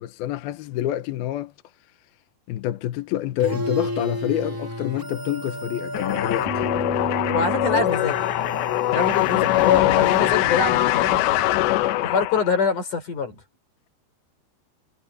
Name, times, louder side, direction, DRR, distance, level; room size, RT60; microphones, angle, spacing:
voice 1, 0.0-1.5 2.5-6.6, left 13 dB, 70° left, 2.7 m, -27 dB
sound 1, 3.4-10.9, equal, 20° right, 0.5 m, -32 dB
sound 2, 5.9-12.7, left 16 dB, 90° left, 3.2 m, -22 dB
voice 2, 7.3-8.3 8.9-11.5 12.0-13.4, left 5 dB, 50° left, 5.9 m, -25 dB
omnidirectional pair, 4.9 m